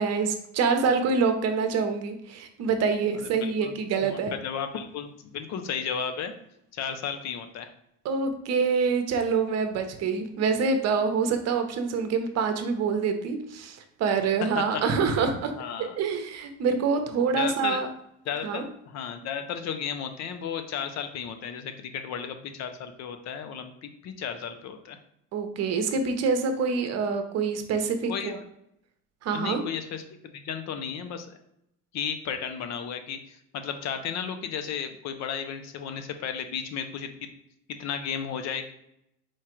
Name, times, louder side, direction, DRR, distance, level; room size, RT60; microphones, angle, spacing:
voice 1, 0.0-4.3 8.0-15.5 15.8-17.9 18.4-18.6 25.3-28.4 29.2-29.6, right 5 dB, 50° right, 7 dB, 0.8 m, -26 dB
voice 2, 3.1-3.7 4.0-6.3 6.7-7.7 14.5-14.8 15.6-16.0 17.3-17.8 18.3-25.0 28.1-28.4 29.3-31.3 31.9-37.3 37.8-38.7, left 7 dB, 55° left, 8 dB, 0.7 m, -34 dB
4.5 x 2.4 x 4.4 m, 0.77 s
cardioid pair, 120°, 33 cm